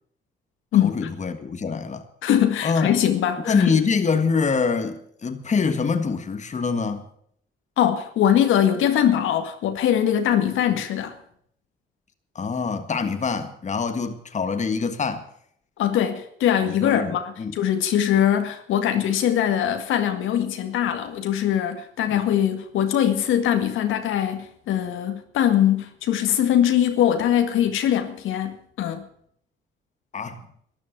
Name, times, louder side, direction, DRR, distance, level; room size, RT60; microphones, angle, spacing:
voice 1, 0.8-2.0 2.6-2.9 3.4-7.0 12.3-15.3 16.6-17.5 22.1-22.2 30.1-30.4, left 5 dB, 35° left, 1.6 m, -25 dB
voice 2, 2.2-3.7 7.8-11.2 15.8-29.0, left 10 dB, 85° left, 1.9 m, -22 dB
13.0 x 11.0 x 8.1 m
cardioid pair, 90°, 20 cm